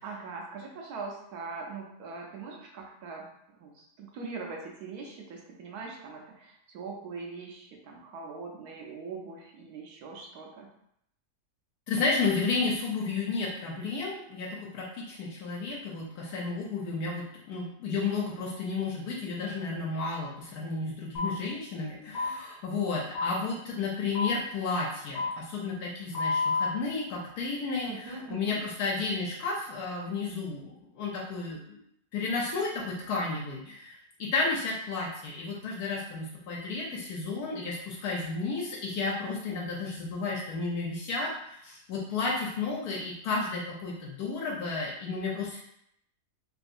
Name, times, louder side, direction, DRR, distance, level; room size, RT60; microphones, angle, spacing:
voice 1, 0.0-10.7 27.8-28.6, right 4 dB, 75° right, 0 dB, 1.2 m, -42 dB
voice 2, 11.9-31.8 32.1-45.6, left 4 dB, 75° left, -2 dB, 1.1 m, -32 dB
sound 1, 21.1-21.3 22.1-22.3 23.1-23.3 24.1-24.3 25.1-25.3 26.1-26.7, left 4 dB, 40° left, 0.6 m, -28 dB
3.2 x 2.7 x 2.5 m, 0.74 s
omnidirectional pair, 1.7 m